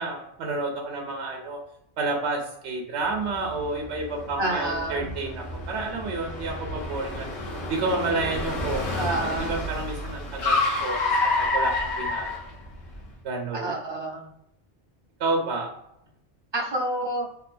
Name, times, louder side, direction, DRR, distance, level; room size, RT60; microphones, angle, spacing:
voice 1, 0.0-1.6 2.0-7.3 7.7-11.0 11.4-12.3 13.2-13.7 15.2-15.7, right 3 dB, 75° right, 1 dB, 0.9 m, -30 dB
Car, 3.2-13.0, left 2 dB, 70° left, 1.0 m, -29 dB
voice 2, 4.4-5.1 9.0-9.6 13.5-14.3 16.5-17.3, right 1 dB, 40° right, -3 dB, 0.4 m, -28 dB
2.7 x 2.4 x 2.5 m, 0.78 s
omnidirectional pair, 1.2 m